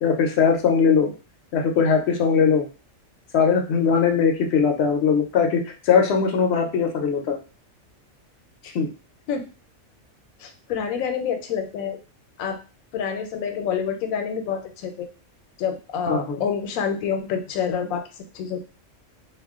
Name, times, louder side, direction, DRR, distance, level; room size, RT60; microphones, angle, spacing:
voice 1, 0.0-1.1 1.5-2.7 3.3-7.4 8.7-8.9 16.1-16.4, left 6 dB, 65° left, 4 dB, 0.7 m, -20 dB
voice 2, 10.4-12.0 12.4-12.6 12.9-15.1 15.6-18.0 18.3-18.6, left 7 dB, 85° left, 6 dB, 1.0 m, -27 dB
2.4 x 2.2 x 3.5 m, 0.33 s
omnidirectional pair, 1.4 m